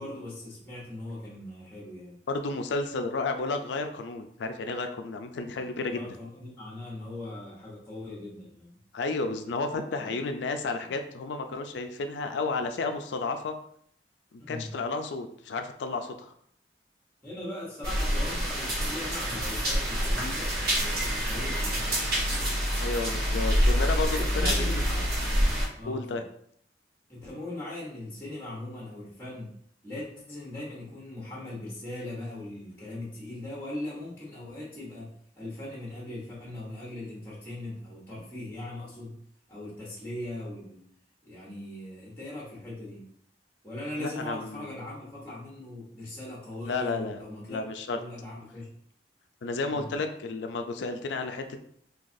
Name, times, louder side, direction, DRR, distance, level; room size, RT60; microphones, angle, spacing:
voice 1, 0.0-2.2 5.5-5.6 5.9-8.8 10.0-10.2 14.4-14.7 17.2-22.3 24.1-25.0 25.7-26.2 27.1-29.5 29.8-39.2 39.5-40.8 41.2-43.1 43.6-47.6 47.9-48.7 49.7-49.9, left 1 dB, 15° left, -6 dB, 1.0 m, -40 dB
voice 2, 2.3-6.2 8.9-13.5 14.3-16.3 22.8-24.8 25.8-26.2 44.0-44.7 46.7-47.2 47.5-48.0 49.4-51.6, left 3 dB, 85° left, 6 dB, 0.4 m, -32 dB
sound 1, 17.8-25.7, equal, 65° right, 1.2 m, -27 dB
3.9 x 2.8 x 2.6 m, 0.65 s
head